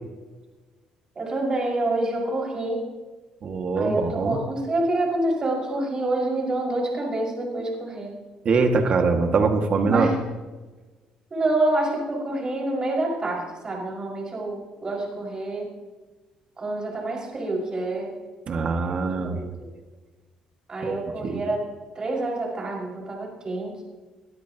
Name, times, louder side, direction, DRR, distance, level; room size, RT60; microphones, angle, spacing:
voice 1, 1.1-2.9 3.8-8.1 9.8-10.2 11.3-15.7 16.6-18.1 19.1-19.5 20.7-23.8, right 2 dB, 35° right, -2 dB, 5.9 m, -27 dB
voice 2, 3.4-4.4 8.4-10.1 18.5-19.4 20.9-21.0 21.2-21.4, right 4 dB, 50° right, 4 dB, 2.1 m, -23 dB
22.0 x 13.0 x 3.0 m, 1.3 s
cardioid pair, 90°, 2 cm